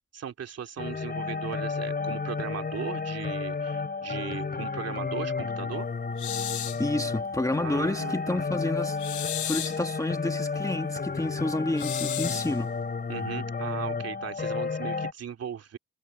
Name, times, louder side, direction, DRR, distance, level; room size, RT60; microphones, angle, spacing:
voice 1, 0.1-5.9 7.6-8.4 13.1-15.8, right 8 dB, 55° right, 3.1 m, -37 dB
sound 1, 0.8-15.1, left 4 dB, 30° left, 3.7 m, -32 dB
sound 2, 6.2-6.9 9.0-9.8 11.8-12.6, left 12 dB, 70° left, 1.2 m, -34 dB
voice 2, 6.8-12.7, left 2 dB, 10° left, 1.6 m, -30 dB
cardioid pair, 90°, 30 cm